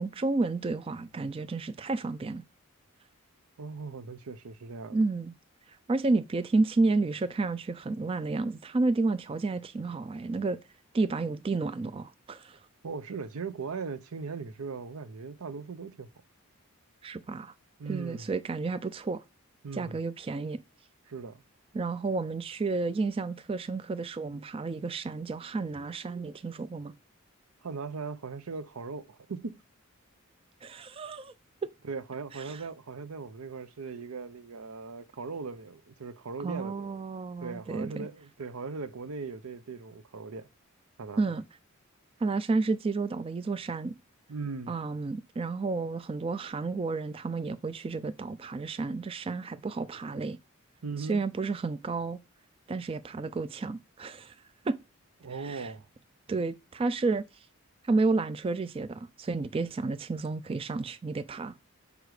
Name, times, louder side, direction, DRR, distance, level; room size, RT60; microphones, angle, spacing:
voice 1, 0.0-2.4 4.9-5.3 5.7-10.6 10.9-12.6 17.0-17.5 17.9-19.2 19.7-20.6 21.7-26.9 30.6-31.3 32.3-32.6 36.4-38.1 41.2-41.4 42.2-44.0 44.7-50.4 51.0-52.2 52.7-54.4 54.6-54.8 55.3-55.7 56.3-57.5 57.8-61.5, right 3 dB, 25° right, 0.3 m, -31 dB
voice 2, 3.6-5.0 12.8-16.1 17.8-18.3 19.6-20.0 21.1-21.4 27.6-29.6 31.8-37.0 37.4-40.5 41.0-41.2 44.3-44.7 50.8-51.2 55.2-55.8, right 4 dB, 80° right, 0.6 m, -39 dB
6.6 x 4.9 x 4.8 m
head